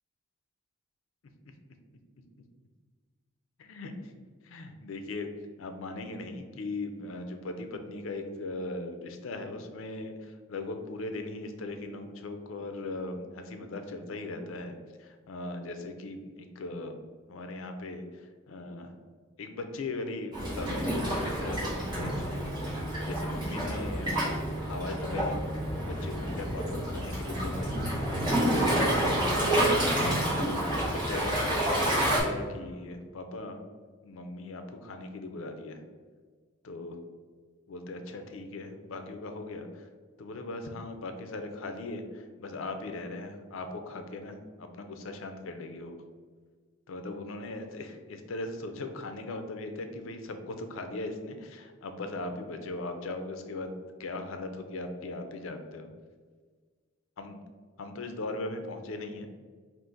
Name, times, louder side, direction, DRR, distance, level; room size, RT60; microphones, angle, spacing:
voice 1, 3.6-4.1 4.4-5.3 5.6-17.0 17.3-18.9 19.4-24.2 24.7-25.4 25.8-27.7 28.5-28.9 30.3-33.6 34.0-35.8 36.6-37.0 37.7-39.9 40.2-45.9 46.9-53.7 54.0-55.9 57.2-57.4 57.8-59.3, left 2 dB, 70° left, 6 dB, 0.5 m, -39 dB
Waves surf, 20.3-32.2, right 1 dB, 20° right, 1.3 m, -29 dB
3.8 x 2.5 x 3.8 m, 1.5 s
head